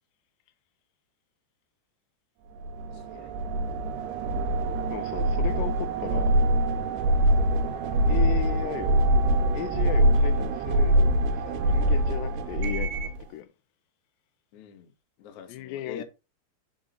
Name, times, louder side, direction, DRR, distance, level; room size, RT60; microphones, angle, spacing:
sound 1, 2.6-13.2, right 1 dB, 80° right, 2.8 m, -24 dB
voice 1, 2.9-3.4 14.5-14.9 15.2-16.0, left 7 dB, 65° left, 1.9 m, -44 dB
voice 2, 4.9-6.4 8.1-9.0 9.5-13.5 15.5-16.0, left 13 dB, 85° left, 2.7 m, -36 dB
5.5 x 5.2 x 3.8 m
omnidirectional pair, 4.9 m